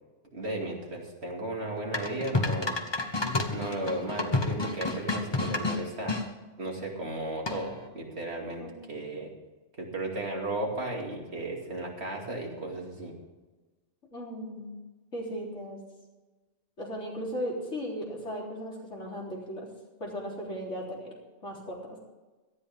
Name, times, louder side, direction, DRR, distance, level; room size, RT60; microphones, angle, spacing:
voice 1, 0.3-2.8 3.5-6.2 6.6-8.6 8.9-9.3 9.8-13.1, right 2 dB, 65° right, -1 dB, 2.9 m, -35 dB
sound 1, 1.9-6.2 7.5-7.9, left 2 dB, 25° left, 1.2 m, -30 dB
voice 2, 8.6-9.0 14.1-14.7 15.1-15.8 16.8-19.7 20.0-21.1 21.4-22.0, equal, 85° left, -3 dB, 4.0 m, -37 dB
18.0 x 13.0 x 3.6 m, 1.2 s
omnidirectional pair, 1.2 m